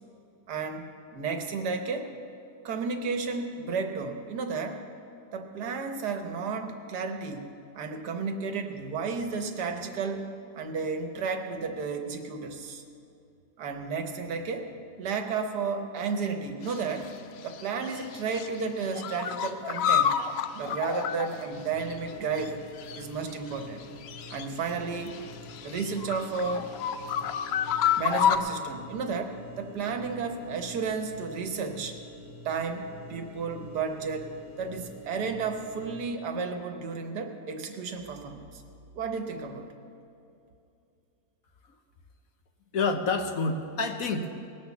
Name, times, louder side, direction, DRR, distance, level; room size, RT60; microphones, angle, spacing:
voice 1, 0.5-2.1 2.6-4.8 5.3-7.5 7.7-10.3 10.5-12.8 13.6-14.7 15.0-17.1 17.4-20.2 20.5-22.6 23.0-23.8 24.3-25.1 25.6-26.8 28.0-32.0 32.4-34.3 34.6-38.6 38.9-39.7, right 5 dB, 80° right, 5 dB, 1.6 m, -32 dB
sound 1, 16.6-17.1 17.4-18.5 18.8-22.1 22.4-22.5 22.8-24.7 25.0-28.4, left 9 dB, 90° left, 0.5 m, -29 dB
sound 2, 21.7-36.0, left 1 dB, 10° right, 1.6 m, -47 dB
voice 2, 42.7-44.5, left 3 dB, 60° left, 6 dB, 1.2 m, -28 dB
19.0 x 6.4 x 7.1 m, 2.6 s
omnidirectional pair, 1.7 m